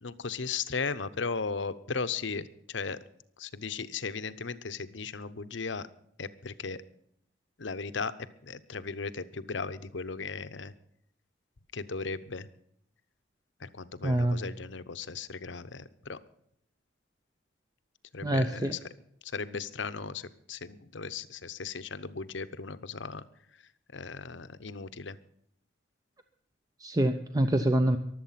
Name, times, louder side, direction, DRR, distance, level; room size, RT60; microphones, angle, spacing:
voice 1, 0.0-3.0 3.4-5.9 6.2-6.8 7.6-8.1 8.4-10.7 11.7-12.5 13.6-16.2 18.1-18.9 19.2-23.2 23.9-25.2, left 4 dB, 75° left, 13 dB, 0.9 m, -36 dB
voice 2, 14.0-14.4 18.2-18.7 26.8-28.0, right 1 dB, 20° right, 7 dB, 0.8 m, -26 dB
23.0 x 8.0 x 5.8 m, 0.70 s
head